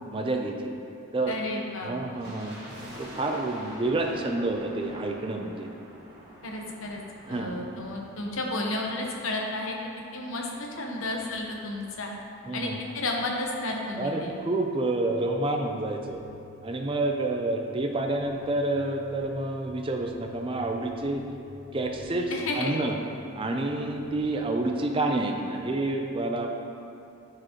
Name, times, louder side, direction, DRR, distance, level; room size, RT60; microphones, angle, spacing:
voice 1, 0.1-0.7 1.1-1.3 1.8-2.5 3.0-5.7 7.3-7.5 12.5-12.8 14.0-16.2 16.6-21.2 21.7-22.9 23.4-26.5, right 2 dB, 25° right, 3 dB, 0.4 m, -28 dB
voice 2, 1.3-2.3 6.4-7.0 7.3-9.7 10.1-10.5 10.8-12.1 12.5-14.3 22.3-22.7, left 2 dB, 70° left, 0 dB, 0.9 m, -32 dB
sound 1, 2.2-9.5 9.7-9.8 10.5-12.3 12.6-12.7 12.9-13.2 13.6-13.7, equal, 50° right, 1.5 m, -47 dB
sound 2, 14.8-25.4, left 2 dB, ahead, 1.3 m, -51 dB
9.8 x 4.9 x 2.9 m, 2.6 s
head